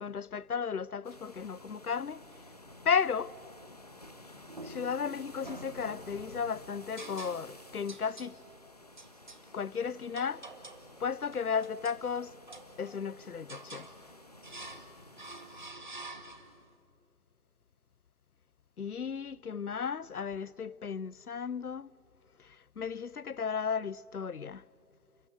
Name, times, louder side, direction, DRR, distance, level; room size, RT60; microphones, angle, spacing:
voice 1, 0.0-2.2 2.8-3.4 4.6-8.4 9.5-10.4 11.0-12.3 12.8-13.9 18.8-21.9 22.4-24.6, left 6 dB, 70° left, 0.7 m, -34 dB
sound 1, 1.0-15.7, left 1 dB, 25° left, 1.3 m, -53 dB
sound 2, 4.5-5.0 5.4-6.3 7.0-7.6 7.9-8.4 9.0-9.4 10.2-10.9 11.3-12.0 12.5-13.1 13.5-14.0 14.4-14.9 15.2-16.6, right 2 dB, 30° right, 1.3 m, -47 dB
28.0 x 26.0 x 8.0 m
figure-of-eight pair, 165°, 46 cm